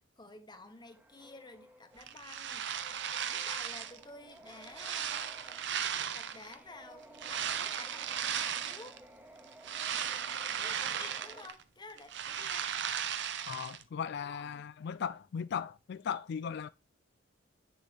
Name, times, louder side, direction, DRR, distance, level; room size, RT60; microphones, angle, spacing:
voice 1, 0.0-2.7 3.3-5.6 6.1-9.0 10.6-12.7 14.2-14.7, left 3 dB, 20° left, 1.2 m, -51 dB
sound 1, 0.7-11.5, right 1 dB, 10° right, 1.2 m, -56 dB
sound 2, 2.0-4.0 4.5-6.5 7.1-9.0 9.4-11.6 11.9-13.8, right 8 dB, 60° right, 0.8 m, -36 dB
voice 2, 13.5-16.7, left 7 dB, 55° left, 0.3 m, -37 dB
9.3 x 7.2 x 3.3 m
head